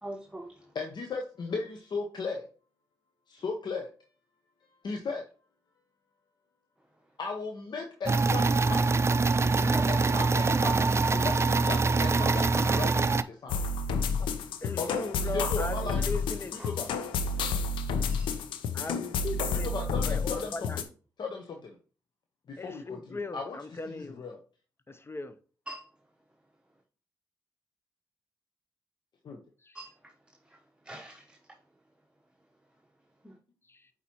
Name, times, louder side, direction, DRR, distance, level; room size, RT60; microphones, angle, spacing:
voice 1, 0.0-0.5 9.7-9.9 10.7-10.8 16.6-16.7 18.1-18.3 25.7-25.8 29.7-29.9 30.9-31.4 33.2-33.3, right 1 dB, 10° right, 1.0 m, -41 dB
voice 2, 0.7-2.4 3.3-3.9 4.8-5.2 7.2-8.8 9.4-13.6 14.8-16.1 16.5-16.9 19.5-20.7 21.2-21.8 22.5-23.6 23.9-24.4 29.2-29.4, left 4 dB, 65° left, 0.9 m, -36 dB
sound 1, 8.1-13.2, right 3 dB, 35° right, 0.4 m, -24 dB
sound 2, 13.5-20.8, left 4 dB, 80° left, 0.6 m, -30 dB
voice 3, 14.6-16.7 18.7-19.7 20.0-20.8 22.6-24.2 24.9-25.3 29.6-29.8 33.7-33.8, left 3 dB, 30° left, 0.8 m, -38 dB
8.2 x 4.3 x 3.0 m
supercardioid pair, 40°, 8 cm